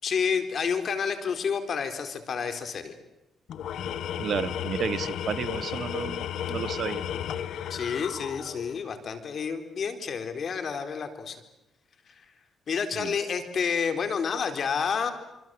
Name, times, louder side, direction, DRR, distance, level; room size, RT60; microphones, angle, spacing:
voice 1, 0.0-2.9 7.7-11.4 12.1-12.2 12.7-15.1, left 6 dB, 55° left, 8 dB, 4.1 m, -29 dB
Tools, 3.5-8.9, left 9 dB, 75° left, 1.4 m, -33 dB
voice 2, 4.2-7.0 13.0-13.1, right 7 dB, 60° right, 15 dB, 1.2 m, -32 dB
26.0 x 26.0 x 7.8 m, 0.96 s
cardioid pair, 80°, 0 cm